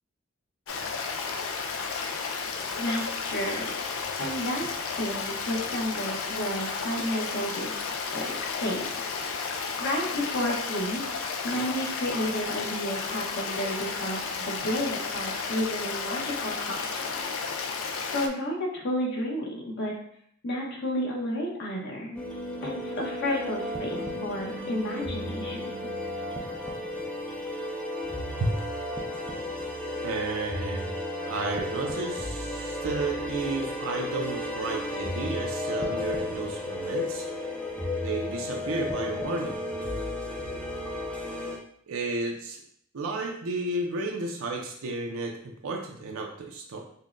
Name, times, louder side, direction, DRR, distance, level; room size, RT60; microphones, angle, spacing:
Stream, 0.7-18.3, left 5 dB, 75° left, 0.4 m, -33 dB
voice 1, 2.5-9.1 9.4-17.3 18.1-19.9 20.4-22.2 22.6-25.7, equal, 60° left, -1 dB, 0.9 m, -32 dB
sound 1, 22.1-41.6, left 1 dB, 5° left, 0.4 m, -33 dB
voice 2, 30.0-31.0 31.3-37.3 38.0-39.6 41.4-41.5 41.9-42.6 42.9-46.8, right 2 dB, 85° right, 1 dB, 0.5 m, -32 dB
5.4 x 2.1 x 2.5 m, 0.66 s
head